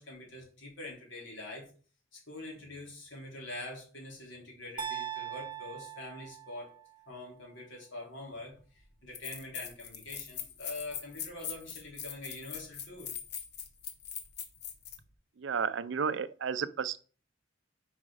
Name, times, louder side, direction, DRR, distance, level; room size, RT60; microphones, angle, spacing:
voice 1, 0.0-1.7 2.1-6.7 7.1-13.1, left 2 dB, 75° left, 3.1 m, -45 dB
sound 1, 4.8-6.9, right 9 dB, 25° right, 0.7 m, -40 dB
sound 2, 8.6-8.7 9.1-15.0, left 8 dB, 60° left, 1.0 m, -41 dB
voice 2, 15.4-17.0, right 6 dB, 70° right, 0.5 m, -32 dB
5.2 x 4.9 x 4.8 m
head